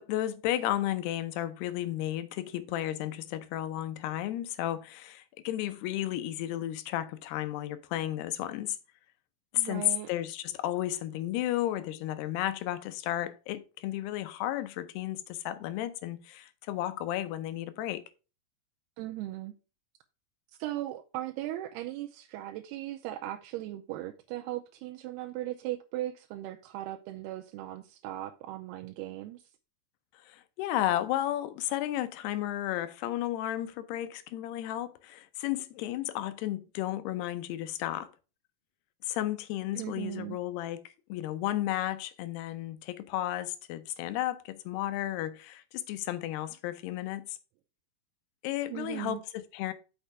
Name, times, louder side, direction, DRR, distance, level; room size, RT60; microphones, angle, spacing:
voice 1, 0.0-8.8 9.5-18.0 30.3-38.1 39.0-40.8 41.1-47.4 48.4-49.7, left 13 dB, 85° left, 2.8 m, -33 dB
voice 2, 9.6-10.1 19.0-19.5 20.6-29.4 39.7-40.4 48.7-49.2, right 14 dB, 85° right, 2.6 m, -38 dB
6.7 x 5.8 x 4.7 m
omnidirectional pair, 4.6 m